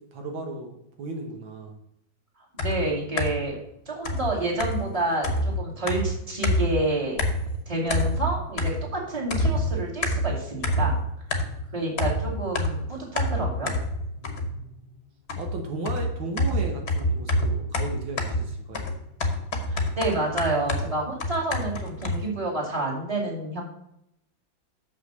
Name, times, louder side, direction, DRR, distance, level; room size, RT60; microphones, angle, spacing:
voice 1, 0.1-1.8 11.4-11.7 14.2-14.9 15.4-18.9, right 2 dB, 85° right, 2 dB, 2.1 m, -36 dB
voice 2, 2.5-3.6 3.9-7.2 7.7-10.9 11.7-13.7 19.7-23.6, right 2 dB, 20° right, -4 dB, 2.5 m, -29 dB
sound 1, 2.6-3.5 4.0-6.9 7.2-7.6 7.9-9.0 9.3-11.7 12.0-14.7 15.3-22.3, left 1 dB, 40° left, 1.2 m, -27 dB
6.7 x 5.8 x 6.7 m, 0.78 s
omnidirectional pair, 2.1 m